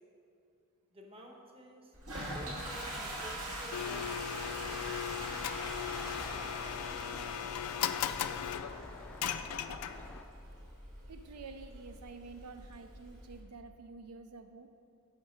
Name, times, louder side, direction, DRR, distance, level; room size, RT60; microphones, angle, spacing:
voice 1, 0.9-5.0, right 1 dB, 25° right, 0 dB, 1.0 m, -52 dB
Toilet flush, 1.9-13.4, right 1 dB, 65° right, 1.8 m, -44 dB
Domestic sounds home sounds, 3.7-10.2, left 9 dB, 85° left, 0.4 m, -37 dB
Traffic noise roadway noise, 4.4-10.2, left 1 dB, 5° left, 0.4 m, -51 dB
voice 2, 11.1-14.7, right 4 dB, 85° right, 8 dB, 0.4 m, -49 dB
10.0 x 5.1 x 5.1 m, 2.5 s
head